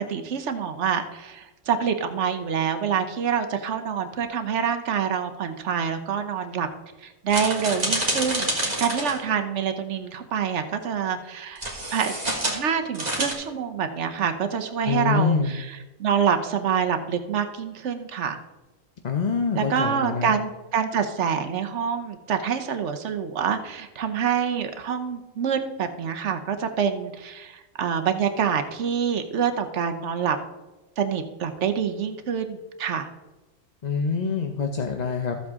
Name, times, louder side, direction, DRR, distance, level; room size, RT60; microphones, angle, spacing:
voice 1, 0.1-6.7 7.0-11.6 11.9-18.4 19.5-30.4 31.0-33.1, right 7 dB, 60° right, 7 dB, 1.1 m, -26 dB
sound 1, 7.3-9.2 11.6-12.6 12.9-13.3, right 1 dB, 30° right, 1.9 m, -27 dB
voice 2, 14.9-15.5 19.0-20.3 33.8-35.4, left 5 dB, 40° left, 3 dB, 0.6 m, -25 dB
14.0 x 7.7 x 3.6 m, 1.1 s
omnidirectional pair, 1.4 m